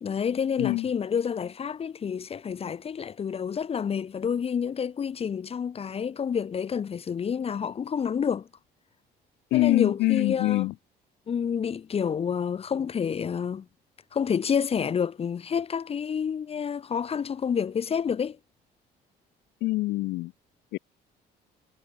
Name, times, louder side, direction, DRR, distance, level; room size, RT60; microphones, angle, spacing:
voice 1, 0.0-8.5 9.5-10.6 11.3-13.6 14.1-18.4, left 7 dB, 35° left, 1.1 m, -29 dB
voice 2, 9.5-10.7 19.6-20.3 20.7-20.8, left 19 dB, 85° left, 1.5 m, -24 dB
cardioid pair, 110°, 17 cm